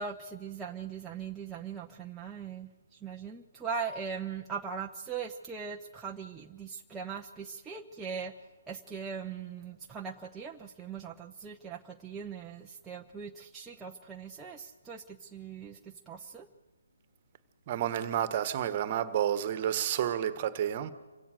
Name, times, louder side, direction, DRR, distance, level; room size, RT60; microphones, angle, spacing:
voice 1, 0.0-16.5, right 6 dB, 10° right, 0.8 m, -40 dB
voice 2, 17.7-20.9, right 10 dB, 35° right, 1.4 m, -30 dB
27.5 x 16.5 x 6.6 m
hypercardioid pair, 150°, 0 cm